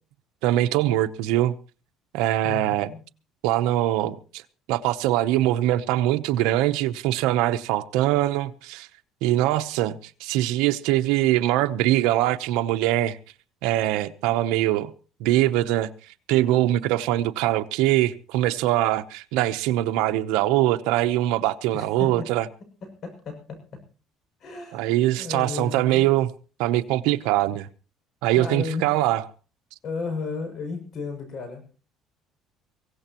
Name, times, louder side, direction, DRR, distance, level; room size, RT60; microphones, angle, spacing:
voice 1, 0.4-1.5 2.1-2.9 3.4-4.4 4.7-8.9 9.2-13.2 13.6-14.9 15.2-15.9 16.3-22.5 24.7-26.3 26.6-27.7 28.2-29.2, right 14 dB, 85° right, 0.8 m, -22 dB
voice 2, 2.4-3.0 21.7-22.3 22.8-23.6 24.4-24.8 25.2-26.1 28.3-28.9 29.8-31.7, left 4 dB, 50° left, 6.9 m, -33 dB
24.0 x 16.5 x 3.0 m
cardioid pair, 120°, 0 cm